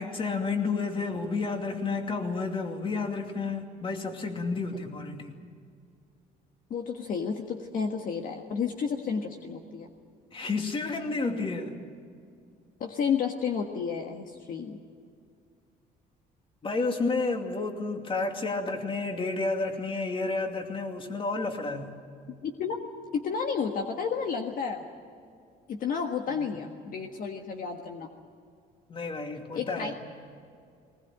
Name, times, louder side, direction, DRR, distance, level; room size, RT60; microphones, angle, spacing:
voice 1, 0.0-5.4 10.3-11.7 16.6-22.0 26.3-26.5 28.9-29.9, left 3 dB, 30° left, 4 dB, 2.6 m, -31 dB
voice 2, 6.7-9.9 12.8-14.8 22.3-22.9 23.1-24.8 25.7-28.1 29.5-29.9, left 6 dB, 55° left, 3 dB, 1.6 m, -31 dB
20.0 x 19.5 x 9.0 m, 2.3 s
cardioid pair, 110°, 17 cm